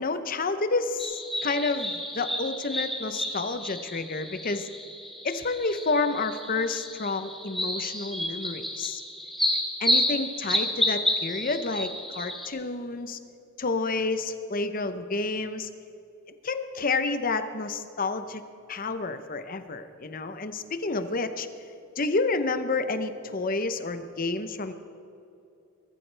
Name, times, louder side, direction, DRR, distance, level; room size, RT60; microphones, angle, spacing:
voice 1, 0.0-4.7 5.2-9.0 9.8-13.2 13.6-15.7 16.4-18.4 18.7-21.5 22.0-24.7, left 3 dB, 40° left, 10 dB, 0.7 m, -29 dB
sound 1, 1.0-12.5, left 1 dB, ahead, 1.2 m, -31 dB
22.0 x 13.5 x 3.4 m, 2.7 s
head